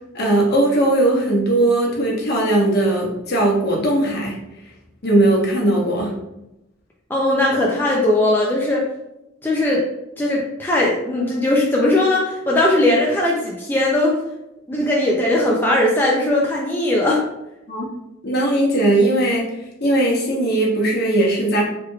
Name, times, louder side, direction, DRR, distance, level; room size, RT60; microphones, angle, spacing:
voice 1, 0.1-4.4 5.0-6.2 14.7-14.9 17.7-17.9 18.2-19.5 19.8-21.6, right 1 dB, 55° left, -2 dB, 0.9 m, -18 dB
voice 2, 7.1-8.8 9.4-9.8 10.2-14.2 14.7-17.2, left 1 dB, 10° left, -4 dB, 0.4 m, -19 dB
3.4 x 3.1 x 2.2 m, 0.88 s
head